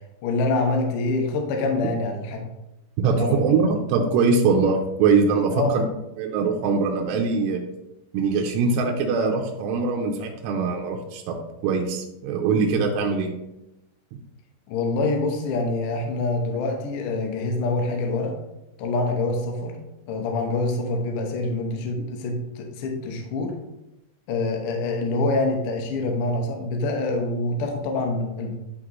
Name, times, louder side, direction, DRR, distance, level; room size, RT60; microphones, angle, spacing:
voice 1, 0.2-2.4 3.0-3.4 5.5-5.7 14.7-18.3 18.8-19.8 20.1-23.5 24.3-28.5, left 2 dB, 80° left, 2 dB, 1.8 m, -25 dB
voice 2, 3.0-5.8 6.2-7.6 8.1-11.4 11.6-13.3, right 4 dB, 80° right, 2 dB, 2.7 m, -22 dB
11.0 x 3.7 x 3.0 m, 0.91 s
omnidirectional pair, 5.2 m